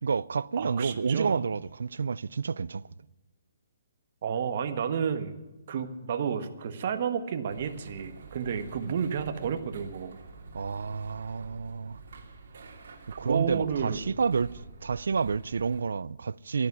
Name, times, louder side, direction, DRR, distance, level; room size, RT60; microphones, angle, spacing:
voice 1, 0.0-2.8 8.8-9.0 10.5-12.0 13.2-16.7, right 5 dB, 85° right, 0.4 m, -30 dB
voice 2, 0.6-1.4 4.2-5.4 5.7-10.2 13.2-14.0, right 7 dB, 45° right, 1.3 m, -31 dB
sound 1, 7.5-15.8, right 4 dB, 60° right, 2.9 m, -47 dB
12.0 x 10.5 x 9.9 m
hypercardioid pair, 165°, 0 cm